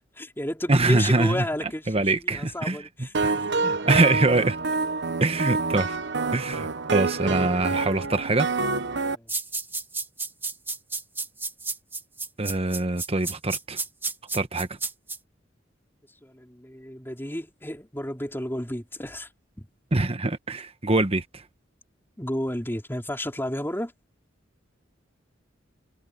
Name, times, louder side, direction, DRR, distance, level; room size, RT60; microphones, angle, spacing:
voice 1, 0.2-3.5 9.1-9.3 16.2-19.3 19.6-19.7 22.2-23.9, left 1 dB, 10° left, 3.9 m, -32 dB
voice 2, 0.7-1.4 1.9-3.3 3.6-4.6 5.2-6.0 6.3-8.5 12.4-13.8 14.3-14.7 19.9-21.4, right 2 dB, 30° right, 1.3 m, -24 dB
sound 1, 3.1-9.2, right 4 dB, 65° right, 1.3 m, -27 dB
sound 2, 9.3-15.2, right 3 dB, 10° right, 1.8 m, -31 dB
head